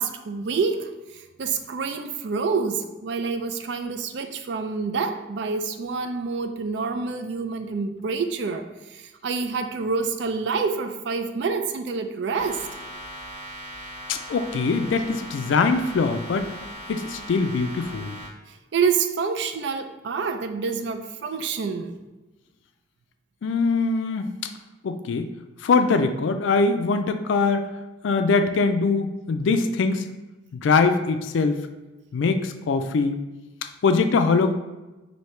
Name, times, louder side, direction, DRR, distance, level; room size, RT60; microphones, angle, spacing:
voice 1, 0.0-12.7 18.7-21.9, right 5 dB, 65° right, 8 dB, 0.4 m, -27 dB
sound 1, 12.3-18.3, equal, 40° right, 0.8 m, -39 dB
voice 2, 14.1-16.5 16.9-18.2 23.4-24.3 24.8-25.3 25.6-27.7 28.0-30.0 30.5-31.6 32.1-33.2 33.8-34.5, left 4 dB, 80° left, 8 dB, 0.4 m, -22 dB
4.4 x 2.7 x 3.2 m, 1.1 s
head